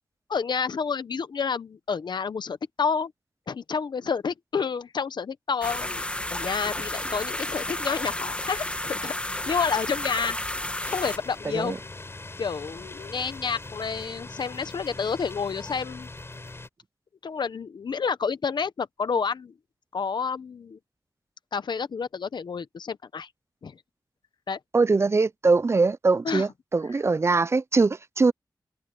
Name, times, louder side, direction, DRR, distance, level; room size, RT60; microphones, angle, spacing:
voice 1, 0.3-3.1 3.5-6.0 6.3-9.1 9.5-10.4 10.9-11.8 12.4-16.1 17.2-19.5 19.9-20.8 21.5-23.3 23.6-23.8 24.5-24.6 26.2-26.5, left 5 dB, 75° left, 0.8 m, -29 dB
sound 1, 5.6-11.2, left 1 dB, 15° left, 1.6 m, -32 dB
sound 2, 10.8-16.7, left 2 dB, 35° left, 4.6 m, -41 dB
voice 2, 24.7-28.3, right 3 dB, 35° right, 0.4 m, -22 dB
wide cardioid pair, 95°, 8 cm